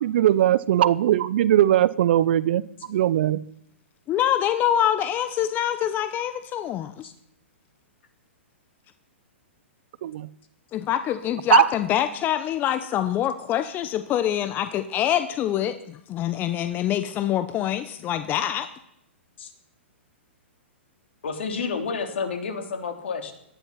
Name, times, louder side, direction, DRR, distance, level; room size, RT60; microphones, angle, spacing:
voice 1, 0.0-3.4 10.0-10.3 11.5-11.7, right 12 dB, 55° right, 0.7 m, -20 dB
voice 2, 4.1-6.9 10.7-18.7, left 11 dB, 30° left, 0.9 m, -25 dB
voice 3, 21.2-23.3, left 5 dB, 70° left, 3.3 m, -30 dB
18.5 x 12.5 x 5.8 m
hypercardioid pair, 115°, 7 cm